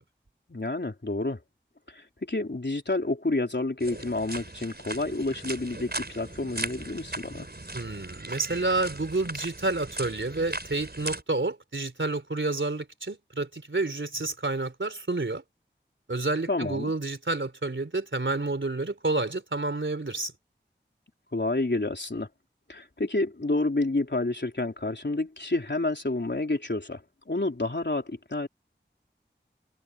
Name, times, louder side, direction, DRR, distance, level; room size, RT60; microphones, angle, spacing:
voice 1, 0.5-1.4 1.9-7.5 16.5-16.9 21.3-22.3 22.7-28.5, left 2 dB, 65° left, 3.7 m, -29 dB
sound 1, 3.8-11.2, right 2 dB, 55° right, 5.3 m, -38 dB
voice 2, 7.7-15.4 16.1-20.3, right 2 dB, 80° right, 3.7 m, -29 dB
wide cardioid pair, 45°, 20 cm